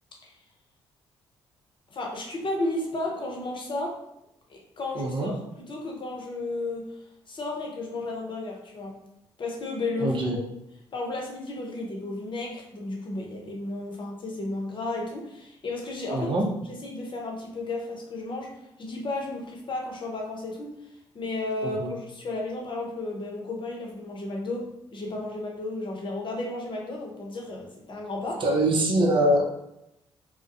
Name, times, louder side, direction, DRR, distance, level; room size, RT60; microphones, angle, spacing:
voice 1, 1.9-3.9 4.5-5.3 5.7-6.9 7.3-8.9 9.4-10.1 10.9-16.3 16.8-18.5 18.8-20.7 21.1-28.4, left 2 dB, 40° left, 0 dB, 0.8 m, -33 dB
voice 2, 4.9-5.3 10.0-10.4 16.1-16.5 21.6-21.9 28.4-29.5, right 1 dB, 45° right, 0 dB, 0.6 m, -23 dB
2.3 x 2.1 x 2.6 m, 0.84 s
hypercardioid pair, 55°, 12 cm